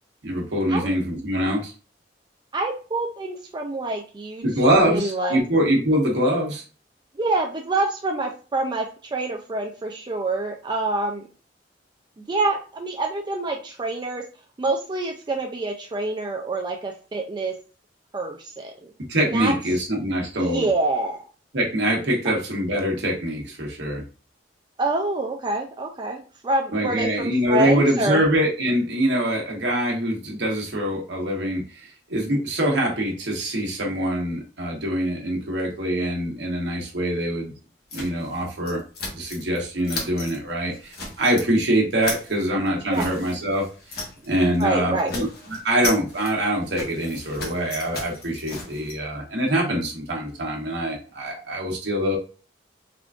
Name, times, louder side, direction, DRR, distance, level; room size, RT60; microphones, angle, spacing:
voice 1, 0.2-1.7 4.4-6.6 19.1-20.7 21.5-24.0 26.7-37.5 37.9-38.8 39.1-52.2, right 1 dB, 75° right, -2 dB, 1.0 m, -24 dB
voice 2, 2.5-5.4 7.1-11.3 12.2-14.2 14.6-17.5 18.1-18.9 19.2-19.5 20.4-21.3 24.8-28.2 42.3-42.5 42.9-43.1 44.6-45.1, right 2 dB, 25° right, 1 dB, 0.3 m, -26 dB
sound 1, 37.9-39.6 39.8-40.4 40.7-41.5 41.8-44.3 44.5-44.7 45.0-48.9, left 2 dB, 55° left, 0.9 m, -35 dB
3.6 x 2.5 x 2.3 m, 0.36 s
head